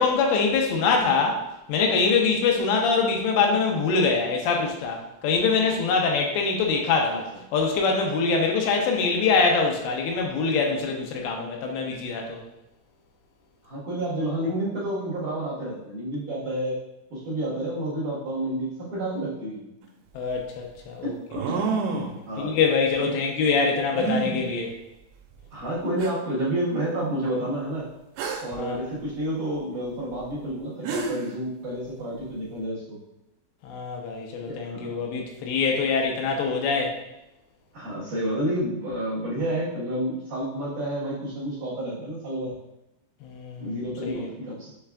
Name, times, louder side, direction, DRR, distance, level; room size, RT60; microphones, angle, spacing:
voice 1, 0.0-1.4 1.7-7.3 7.5-12.4 20.2-21.1 22.4-24.7 28.6-28.8 33.6-37.0 43.2-43.8 44.0-44.3, left 4 dB, 85° left, 1 dB, 2.9 m, -24 dB
voice 2, 13.6-16.8 17.1-19.7 21.3-21.4 22.3-22.6 23.0-23.1 25.5-27.9 28.4-33.0 34.4-35.0 37.7-42.6 43.6-44.7, right 1 dB, 60° right, -10 dB, 2.3 m, -30 dB
sound 1, 19.8-19.9 21.3-22.2 24.0-24.4 25.4-25.5 26.0-26.1 28.2-28.6 30.5-30.6 30.8-31.3, right 4 dB, 85° right, 2.9 m, -28 dB
6.8 x 3.2 x 2.3 m, 0.91 s
omnidirectional pair, 5.1 m